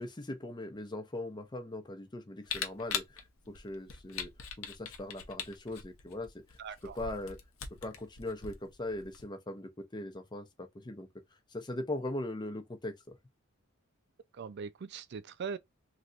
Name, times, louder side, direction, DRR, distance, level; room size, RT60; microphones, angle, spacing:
voice 1, 0.0-3.2 3.5-4.3 4.6-7.4 7.8-11.1 11.5-13.2, left 1 dB, 20° left, 0.6 m, -40 dB
Camera, 2.5-9.2, left 7 dB, 80° left, 0.8 m, -41 dB
voice 2, 6.6-7.0 14.4-15.6, right 6 dB, 55° right, 0.4 m, -41 dB
3.2 x 2.6 x 2.4 m
head